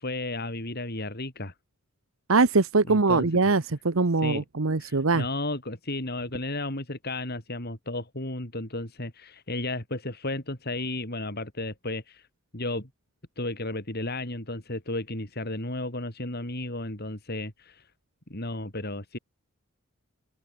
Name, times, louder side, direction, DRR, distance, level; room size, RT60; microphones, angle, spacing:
voice 1, 0.0-1.5 2.9-3.5 4.2-4.4 4.8-12.3 12.5-12.9 13.4-17.9 18.3-19.2, left 2 dB, 50° left, 4.9 m, -33 dB
voice 2, 2.3-5.2, right 3 dB, 70° right, 1.0 m, -22 dB
head